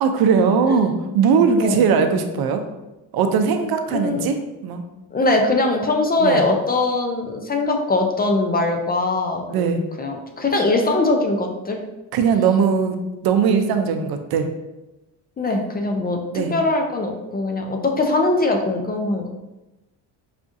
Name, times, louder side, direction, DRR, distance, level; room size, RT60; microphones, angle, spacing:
voice 1, 0.0-2.6 3.1-4.4 4.6-4.8 6.2-6.4 9.5-9.8 12.1-13.0 13.2-14.5 16.3-16.5, right 6 dB, 65° right, 6 dB, 0.5 m, -19 dB
voice 2, 3.9-4.3 5.1-11.8 15.4-19.3, left 2 dB, 25° left, 3 dB, 0.4 m, -21 dB
5.0 x 2.3 x 2.6 m, 1.0 s
cardioid pair, 95°, 41 cm